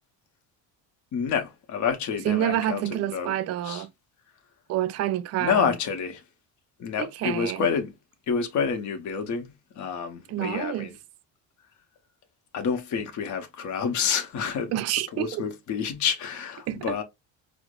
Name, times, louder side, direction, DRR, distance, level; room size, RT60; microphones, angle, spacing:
voice 1, 1.1-2.8 3.1-3.4 3.6-3.9 5.4-6.2 6.8-7.9 8.3-11.0 12.5-14.7 15.1-17.0, left 6 dB, 50° left, 0.8 m, -28 dB
voice 2, 2.3-3.9 4.7-5.7 7.0-7.7 10.3-10.9 14.7-15.4 16.7-17.0, right 12 dB, 45° right, 0.4 m, -28 dB
4.6 x 2.1 x 2.2 m
supercardioid pair, 95°, 38 cm